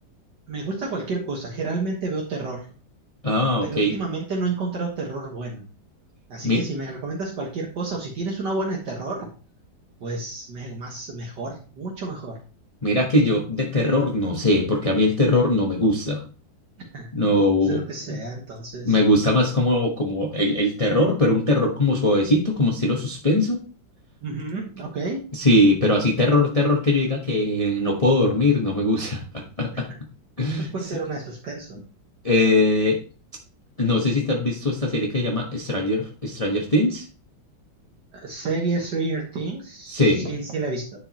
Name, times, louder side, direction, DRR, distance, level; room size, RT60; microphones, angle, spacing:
voice 1, 0.5-2.7 3.6-5.7 6.3-9.3 10.0-12.4 16.9-17.1 17.6-19.0 24.2-25.3 29.7-29.8 30.6-31.8 38.1-41.0, right 3 dB, 60° right, -1 dB, 1.9 m, -30 dB
voice 2, 3.2-3.9 6.4-6.6 12.8-16.2 17.1-17.8 18.1-18.2 18.8-23.6 25.3-29.9 30.4-30.7 32.2-33.0 33.8-37.0 39.9-40.3, left 1 dB, 25° left, 0 dB, 0.8 m, -21 dB
10.0 x 4.8 x 2.9 m, 0.36 s
omnidirectional pair, 2.2 m